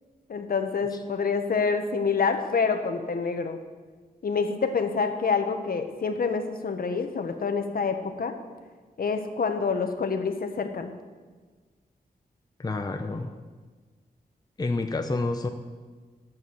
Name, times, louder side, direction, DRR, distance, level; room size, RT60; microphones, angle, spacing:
voice 1, 0.3-3.6 4.2-8.4 9.0-10.9, left 5 dB, 65° left, 7 dB, 1.1 m, -27 dB
voice 2, 12.6-13.3 14.6-15.5, left 3 dB, 25° left, 5 dB, 0.7 m, -28 dB
11.5 x 7.6 x 7.7 m, 1.4 s
wide cardioid pair, 135°, 16 cm